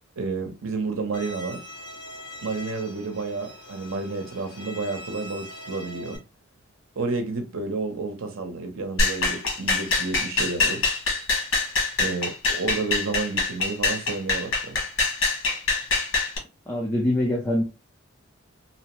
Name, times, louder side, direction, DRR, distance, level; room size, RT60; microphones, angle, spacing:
voice 1, 0.2-1.6 2.4-6.2 7.0-10.9 12.0-14.8, right 3 dB, 80° right, 0.7 m, -30 dB
Bowed string instrument, 1.1-6.2, left 1 dB, 50° left, 0.8 m, -42 dB
sound 1, 9.0-16.4, left 3 dB, 80° left, 1.2 m, -24 dB
voice 2, 16.7-17.6, left 1 dB, 10° left, 0.5 m, -24 dB
2.8 x 2.1 x 2.9 m
head